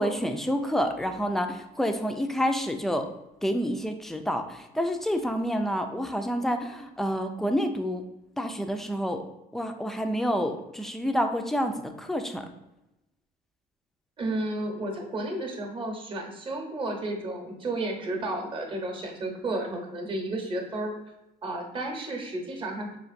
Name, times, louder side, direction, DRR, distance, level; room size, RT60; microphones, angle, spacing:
voice 1, 0.0-3.1 3.4-8.0 8.4-9.2 9.5-12.5, equal, ahead, 5 dB, 0.3 m, -28 dB
voice 2, 14.2-20.9 21.4-23.0, right 2 dB, 30° right, 1 dB, 0.9 m, -32 dB
4.9 x 2.5 x 2.5 m, 0.92 s
cardioid pair, 110°, 17 cm